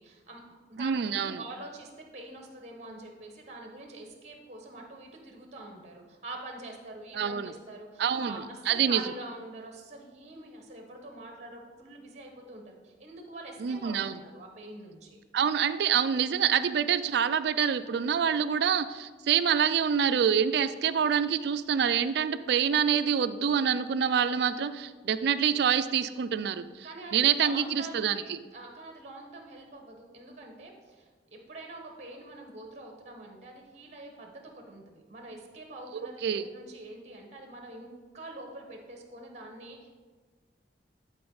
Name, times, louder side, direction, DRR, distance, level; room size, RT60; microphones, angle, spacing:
voice 1, 0.0-15.2 26.8-37.9 38.1-40.0, right 2 dB, 40° right, 2 dB, 1.1 m, -45 dB
voice 2, 0.8-1.4 7.1-7.5 8.0-8.4 8.7-9.0 13.6-14.2 15.3-26.9 27.1-28.4 36.2-36.4, right 7 dB, 65° right, 12 dB, 0.4 m, -26 dB
11.0 x 4.4 x 3.9 m, 1.4 s
head